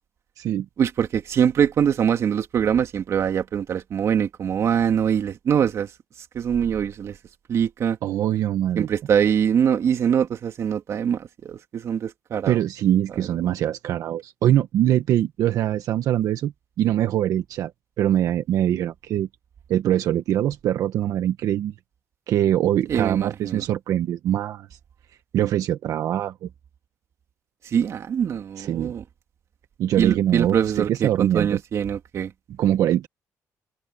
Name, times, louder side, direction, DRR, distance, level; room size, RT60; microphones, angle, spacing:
voice 1, 0.8-5.9 6.3-7.2 7.5-8.0 8.8-12.6 22.9-23.6 27.6-29.0 30.0-32.3, right 8 dB, 50° right, 2.4 m, -23 dB
voice 2, 8.0-8.9 12.5-16.5 16.8-17.7 18.0-19.3 19.7-21.7 22.3-24.7 25.3-26.5 28.6-28.9 29.8-31.6 32.6-33.1, right 11 dB, 70° right, 1.4 m, -23 dB
cardioid pair, 115°, 6 cm